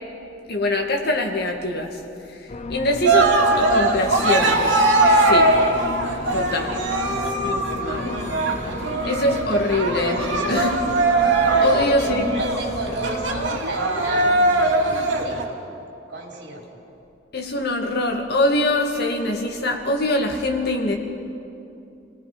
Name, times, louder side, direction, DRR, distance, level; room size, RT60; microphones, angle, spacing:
voice 1, 0.5-2.0 2.7-4.8 5.1-5.5 6.3-8.3 9.0-12.4 17.3-20.9, left 1 dB, 60° left, 2 dB, 2.4 m, -24 dB
sound 1, 2.5-13.6, left 3 dB, 35° left, 0.7 m, -34 dB
Cheering, 3.1-15.5, right 2 dB, 85° right, 2.5 m, -20 dB
voice 2, 11.5-12.1 12.4-14.3 14.5-15.4 16.1-16.6, right 2 dB, 65° right, -2 dB, 4.3 m, -32 dB
28.5 x 18.5 x 5.3 m, 2.7 s
head